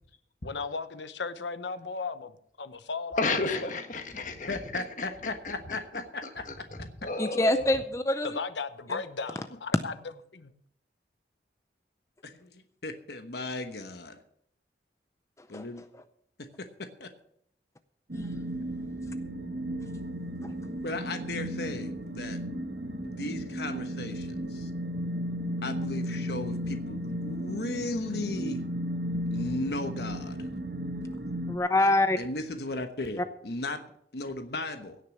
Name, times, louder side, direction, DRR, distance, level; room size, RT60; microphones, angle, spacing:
voice 1, 0.4-3.7 8.2-9.9 10.3-10.5, left 4 dB, 85° left, 1.0 m, -36 dB
voice 2, 3.2-5.1 5.4-7.8, left 3 dB, 45° left, 1.5 m, -33 dB
voice 3, 4.5-6.4 6.8-6.9 12.2-14.2 15.5-15.8 16.4-17.1 20.8-22.4 23.0-24.7 25.6-28.6 29.3-30.5 32.2-33.8 34.1-35.0, left 2 dB, 65° left, 1.1 m, -36 dB
voice 4, 7.2-8.4 15.5-15.6 18.1-18.3 20.4-20.5 31.5-32.2, left 2 dB, 15° left, 0.5 m, -25 dB
sound 1, 18.1-31.6, equal, 60° right, 1.0 m, -34 dB
17.0 x 6.6 x 7.1 m
head